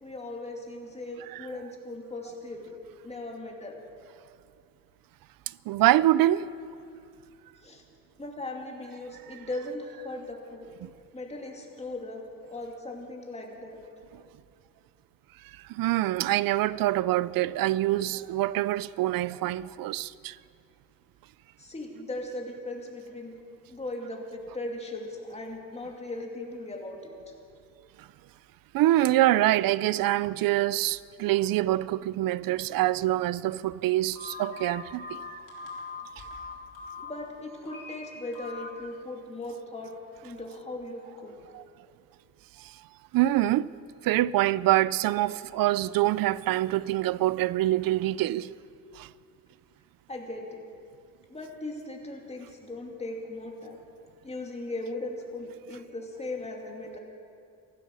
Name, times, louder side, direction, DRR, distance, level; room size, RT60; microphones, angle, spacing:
voice 1, 0.0-2.8 3.0-3.8 7.6-7.8 8.2-10.7 11.1-12.2 12.5-13.8 21.6-23.3 23.7-27.3 37.0-39.9 40.2-41.4 50.1-50.6 51.3-53.8 54.2-57.0, left 2 dB, 20° left, 2.5 m, -38 dB
voice 2, 5.7-6.5 10.8-10.9 15.5-20.4 28.0-28.1 28.7-35.4 41.5-41.6 42.6-42.8 43.1-43.7 44.0-48.5 48.9-49.1, right 15 dB, 75° right, 0.5 m, -25 dB
Telephone, 34.1-37.1 37.6-37.9 38.3-38.7, left 4 dB, 65° left, 3.9 m, -41 dB
15.5 x 13.5 x 6.3 m
cardioid pair, 100°, 34 cm